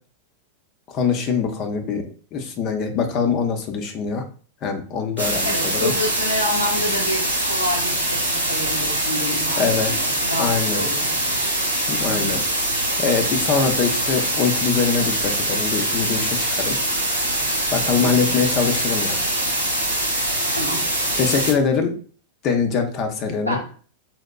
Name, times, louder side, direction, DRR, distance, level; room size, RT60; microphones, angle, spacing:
voice 1, 0.9-4.2 4.6-5.9 9.6-10.1 10.4-10.8 11.9-12.4 13.0-16.8 17.7-19.2 21.2-22.0 22.4-23.6, left 6 dB, 35° left, 5 dB, 0.6 m, -23 dB
sound 1, 5.2-21.5, right 1 dB, 80° right, 0.9 m, -23 dB
voice 2, 5.4-11.6 12.1-12.4 18.0-18.3 20.6-20.9 23.5-23.7, equal, 90° left, -2 dB, 1.1 m, -28 dB
4.0 x 2.1 x 2.2 m, 0.41 s
figure-of-eight pair, 90°, 0 cm